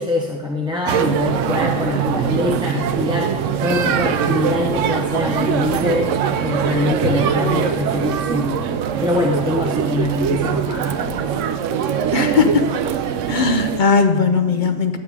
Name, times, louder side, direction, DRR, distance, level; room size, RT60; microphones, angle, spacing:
voice 1, 0.0-11.5, left 2 dB, 5° right, -2 dB, 0.9 m, -24 dB
sound 1, 0.9-13.8, right 8 dB, 80° right, 0.9 m, -22 dB
voice 2, 12.1-12.7 13.3-15.0, left 5 dB, 45° left, 7 dB, 0.8 m, -17 dB
11.5 x 9.0 x 3.6 m, 1.3 s
omnidirectional pair, 1.3 m